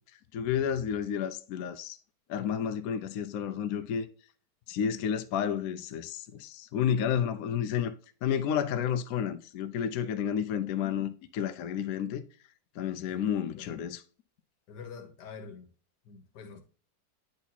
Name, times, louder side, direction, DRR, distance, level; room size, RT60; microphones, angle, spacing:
voice 1, 0.3-2.0 2.3-4.1 4.7-7.9 8.2-12.2 12.8-14.0, left 8 dB, 70° left, 0.9 m, -31 dB
voice 2, 13.1-13.8 14.7-15.7 16.0-16.6, left 5 dB, 85° left, 1.6 m, -46 dB
9.0 x 4.0 x 2.8 m
omnidirectional pair, 1.8 m